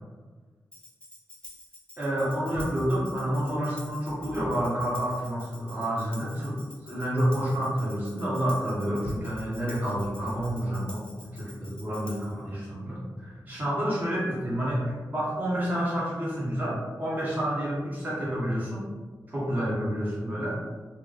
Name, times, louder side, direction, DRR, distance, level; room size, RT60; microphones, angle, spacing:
Tambourine, 0.7-12.4, left 1 dB, 15° left, 0.4 m, -49 dB
voice 1, 2.0-18.9 19.3-20.6, equal, 25° right, -8 dB, 1.2 m, -29 dB
sound 1, 2.5-2.9 3.8-4.9 9.0-9.4 10.0-10.7, left 1 dB, 5° right, 1.1 m, -42 dB
3.2 x 2.5 x 3.2 m, 1.4 s
wide cardioid pair, 140°, 7 cm